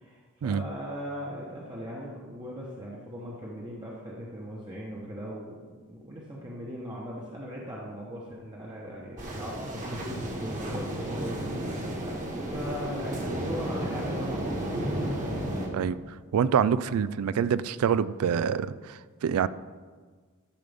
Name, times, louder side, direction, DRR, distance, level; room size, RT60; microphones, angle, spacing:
voice 1, 0.0-5.6 5.9-12.0 12.5-14.9, equal, 20° right, -4 dB, 1.0 m, -39 dB
sound 1, 9.2-15.7, right 1 dB, 35° right, 1.5 m, -32 dB
voice 2, 16.3-19.5, right 7 dB, 75° right, 16 dB, 0.3 m, -26 dB
13.0 x 6.7 x 3.5 m, 1.5 s
head